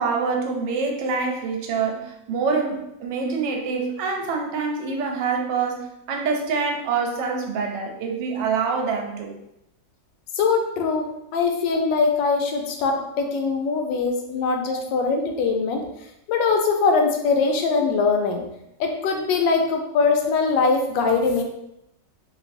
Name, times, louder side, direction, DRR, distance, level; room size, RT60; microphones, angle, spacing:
voice 1, 0.0-9.3, right 5 dB, 90° right, 2 dB, 1.3 m, -26 dB
voice 2, 10.4-11.1 11.3-15.8 16.3-18.4 18.8-21.4, left 4 dB, 90° left, 3 dB, 1.3 m, -22 dB
3.2 x 2.9 x 2.5 m, 0.83 s
omnidirectional pair, 1.9 m